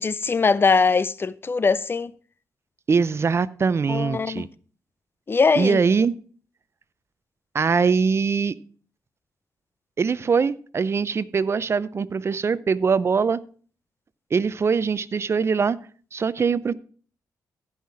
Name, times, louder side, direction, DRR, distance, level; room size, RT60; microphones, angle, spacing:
voice 1, 0.0-2.1 3.9-4.5 5.3-5.8, left 4 dB, 35° left, 0.5 m, -21 dB
voice 2, 2.9-4.5 5.6-6.1 7.5-8.5 10.0-13.4 14.3-15.8 16.1-16.7, right 5 dB, 40° right, 0.6 m, -22 dB
14.5 x 5.7 x 4.7 m
cardioid pair, 75°, 7 cm